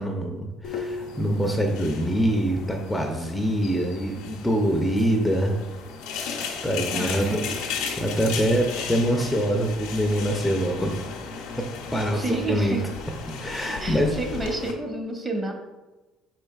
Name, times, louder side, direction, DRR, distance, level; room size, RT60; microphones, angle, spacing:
voice 1, 0.0-5.5 6.6-7.4 8.0-10.9 11.9-12.8 13.4-14.1, equal, 10° left, 2 dB, 0.6 m, -24 dB
sound 1, 0.6-14.7, left 5 dB, 85° left, 0.6 m, -35 dB
voice 2, 6.9-7.5 12.1-12.8 13.8-15.5, right 2 dB, 25° right, 2 dB, 1.0 m, -29 dB
4.8 x 4.4 x 2.3 m, 1.1 s
supercardioid pair, 75°, 0 cm